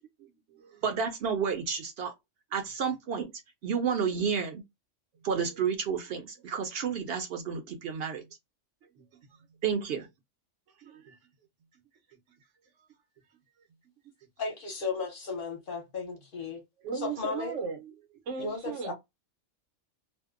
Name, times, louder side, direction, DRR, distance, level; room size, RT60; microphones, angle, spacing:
voice 1, 0.0-0.8 8.2-8.3 9.0-9.3 10.8-11.2 16.8-17.9 18.3-18.9, right 5 dB, 85° right, 1.1 m, -38 dB
voice 2, 0.8-2.1 2.5-3.3 3.6-4.6 5.2-8.2 9.6-10.1, right 6 dB, 65° right, 0.7 m, -30 dB
voice 3, 14.4-16.6 16.9-17.5 18.4-18.9, left 4 dB, 50° left, 0.9 m, -35 dB
2.6 x 2.1 x 2.3 m
omnidirectional pair, 1.2 m